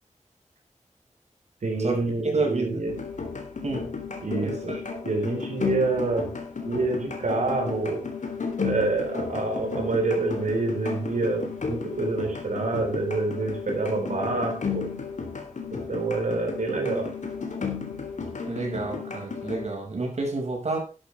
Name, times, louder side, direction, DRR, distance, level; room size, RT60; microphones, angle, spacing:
voice 1, 1.6-2.9 4.2-4.8 5.0-6.3 6.6-8.0 8.6-14.8 15.7-17.1, right 3 dB, 80° right, 2 dB, 4.3 m, -27 dB
voice 2, 2.3-2.8 3.6-3.9 4.4-4.8 18.5-20.8, right 3 dB, 60° right, 1 dB, 5.9 m, -29 dB
sound 1, 2.9-19.7, left 5 dB, 70° left, 3.4 m, -33 dB
12.0 x 12.0 x 3.5 m, 0.34 s
wide cardioid pair, 115°, 13 cm